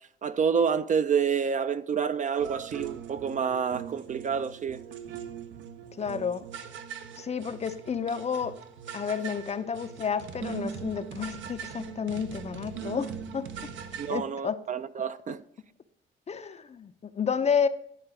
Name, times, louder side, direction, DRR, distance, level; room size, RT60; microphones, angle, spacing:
voice 1, 0.2-4.8 14.0-15.4, right 6 dB, 40° right, 0.4 m, -28 dB
sound 1, 2.4-14.2, right 8 dB, 75° right, 0.7 m, -41 dB
voice 2, 6.0-6.5 7.2-8.6 8.9-13.7 14.1-14.6 16.3-17.7, left 6 dB, 35° left, 0.5 m, -31 dB
10.5 x 3.9 x 4.9 m
cardioid pair, 90°, 20 cm